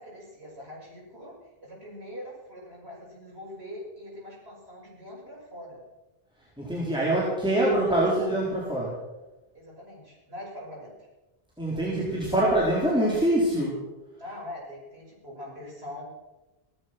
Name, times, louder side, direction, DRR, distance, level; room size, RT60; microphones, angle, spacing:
voice 1, 0.0-5.8 7.0-7.2 7.5-8.3 9.5-11.1 14.2-16.0, left 1 dB, 90° right, -4 dB, 6.7 m, -42 dB
voice 2, 6.6-9.0 11.6-13.8, right 1 dB, 5° right, -6 dB, 4.2 m, -24 dB
17.5 x 13.5 x 6.1 m, 1.1 s
omnidirectional pair, 1.0 m